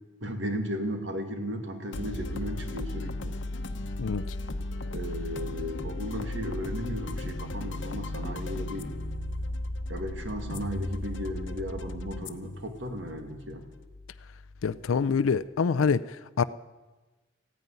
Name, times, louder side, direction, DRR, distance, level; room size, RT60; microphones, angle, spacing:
voice 1, 0.2-3.4 4.9-8.9 9.9-13.7, equal, 70° right, 2.1 m, -35 dB
sound 1, 1.9-15.3, left 2 dB, 65° left, 0.9 m, -36 dB
voice 2, 14.6-16.4, left 5 dB, 85° left, 0.5 m, -26 dB
15.5 x 9.5 x 9.6 m
head